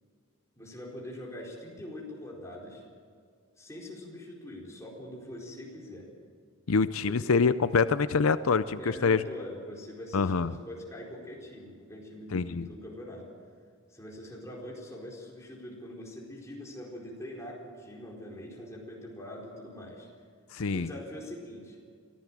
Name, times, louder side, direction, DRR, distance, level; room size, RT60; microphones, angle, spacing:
voice 1, 0.5-2.8 3.6-6.1 7.1-7.2 8.8-13.3 13.9-20.1 20.7-21.8, left 1 dB, 15° left, -3 dB, 4.5 m, -43 dB
voice 2, 6.7-9.2 10.1-10.5 12.3-12.7 20.5-20.9, left 5 dB, 90° left, 13 dB, 0.6 m, -25 dB
23.5 x 15.5 x 7.5 m, 2.1 s
head